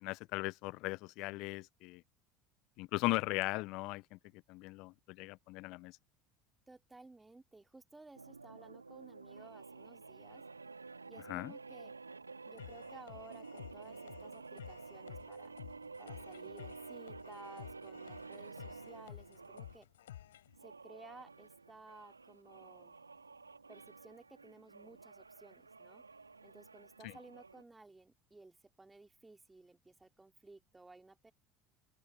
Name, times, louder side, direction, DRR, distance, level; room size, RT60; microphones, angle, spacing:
voice 1, 0.0-2.0 2.8-4.2 4.5-6.0 11.3-11.5 27.0-27.2, left 23 dB, 55° left, 0.4 m, -38 dB
voice 2, 6.7-10.4 11.1-11.9 12.4-15.5 16.0-19.9 20.6-23.0 23.7-26.0 26.4-31.3, right 2 dB, 15° right, 3.0 m, -57 dB
sound 1, 8.1-19.8 20.5-27.6, right 4 dB, 90° right, 2.1 m, -51 dB
sound 2, 12.6-20.6, left 12 dB, 75° left, 3.6 m, -53 dB
open air
figure-of-eight pair, 70°, 0 cm